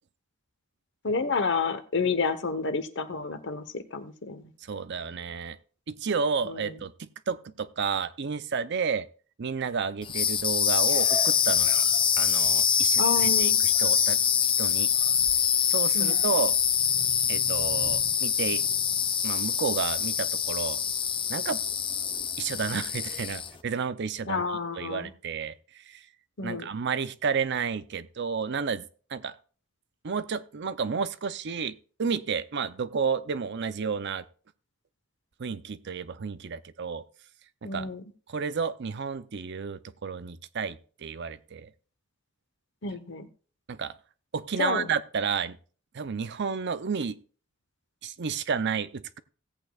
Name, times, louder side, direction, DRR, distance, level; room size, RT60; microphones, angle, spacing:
voice 1, 1.0-4.4 6.4-6.7 13.0-13.6 15.9-16.2 24.3-25.1 26.4-26.7 37.6-38.0 42.8-43.3 44.6-44.9, left 4 dB, 60° left, 1.0 m, -30 dB
voice 2, 4.6-5.6 5.9-9.1 9.4-11.8 12.2-14.9 15.7-16.5 17.3-18.6 19.2-20.8 21.3-21.6 22.4-24.5 24.8-26.0 26.4-28.8 29.1-29.4 30.0-34.2 35.4-37.0 37.6-37.9 38.3-41.7 43.7-43.9 44.3-45.6 45.9-47.2 48.0-49.2, right 5 dB, 55° right, 0.6 m, -31 dB
sound 1, 10.0-23.6, left 8 dB, 25° left, 0.6 m, -25 dB
17.0 x 8.3 x 2.4 m
head